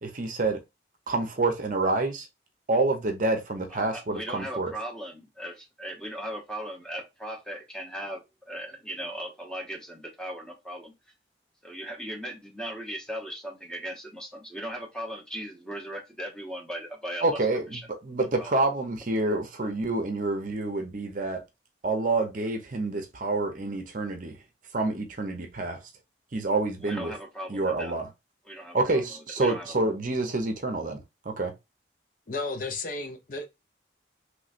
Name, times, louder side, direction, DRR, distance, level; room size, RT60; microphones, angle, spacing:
voice 1, 0.0-0.6 1.1-2.3 2.7-4.7 17.2-21.4 21.8-24.4 24.7-25.8 26.3-27.1 27.5-28.1 28.7-31.5, right 2 dB, 45° right, 0.7 m, -28 dB
voice 2, 3.7-10.9 11.6-17.4 17.7-17.9 18.4-18.5 26.8-27.9 28.4-29.9, equal, 5° left, 0.9 m, -38 dB
voice 3, 32.3-33.5, left 3 dB, 45° left, 0.6 m, -33 dB
3.2 x 3.1 x 2.5 m
head